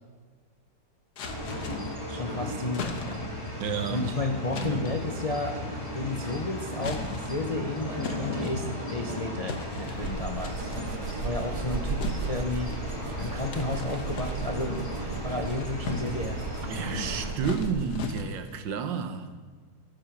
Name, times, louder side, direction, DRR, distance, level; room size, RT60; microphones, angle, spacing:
sound 1, 1.2-2.0 2.7-3.4 4.5-5.0 6.0-6.4 6.8-7.5 8.0-9.0 9.5-10.1 10.4-10.9 12.0-12.9 13.5-14.7 15.2-16.3 17.0-18.6, left 5 dB, 60° left, 1.5 m, -39 dB
sound 2, 1.2-17.3, left 1 dB, 20° left, 2.4 m, -35 dB
voice 1, 2.1-3.3 3.9-10.7 11.1-12.7 13.2-16.4 16.9-17.2, left 2 dB, 80° left, 0.3 m, -33 dB
voice 2, 3.6-4.1 4.5-4.9 16.7-19.3, right 6 dB, 80° right, 1.7 m, -31 dB
sound 3, 9.8-18.1, right 5 dB, 55° right, 0.7 m, -36 dB
13.5 x 7.5 x 6.0 m
omnidirectional pair, 2.0 m